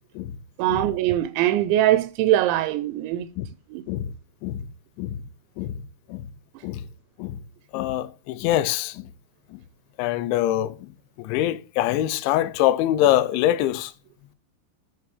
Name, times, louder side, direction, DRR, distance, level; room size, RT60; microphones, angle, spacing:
voice 1, 0.6-3.3 3.7-3.8, right 13 dB, 85° right, 3.0 m, -22 dB
voice 2, 7.7-9.1 9.5-9.6 10.0-10.9 11.2-13.9, left 13 dB, 90° left, 3.1 m, -24 dB
14.0 x 7.2 x 3.4 m
omnidirectional pair, 5.2 m